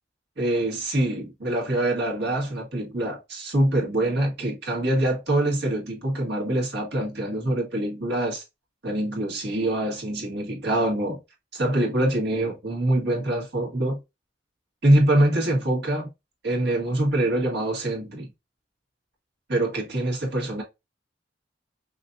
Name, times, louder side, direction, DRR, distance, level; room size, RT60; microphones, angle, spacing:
voice 1, 0.4-8.4 8.8-11.2 11.5-14.0 14.8-16.1 16.4-18.3 19.5-20.6, right 1 dB, 60° right, 1.9 m, -24 dB
5.6 x 2.7 x 2.4 m
head